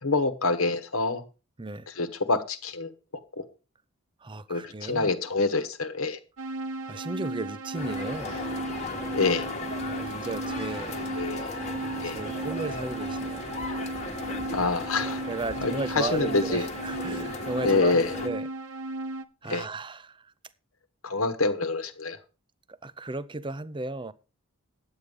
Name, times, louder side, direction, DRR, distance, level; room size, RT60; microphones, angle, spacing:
voice 1, 0.0-1.2 1.9-2.9 3.4-3.5 4.5-6.2 9.1-9.5 10.9-11.5 12.0-12.2 14.5-15.2 15.6-16.7 17.1-17.2 17.6-18.1 19.5-19.7 21.0-22.2, left 3 dB, 70° left, 1.2 m, -26 dB
voice 2, 4.2-5.1 6.9-8.4 10.0-11.0 12.0-13.5 15.3-18.4 19.4-20.2 22.8-24.1, right 3 dB, 20° right, 0.5 m, -35 dB
sound 1, 6.4-19.2, right 2 dB, 75° right, 0.8 m, -35 dB
sound 2, 7.7-18.3, left 3 dB, 30° left, 1.3 m, -36 dB
9.8 x 8.2 x 5.2 m
head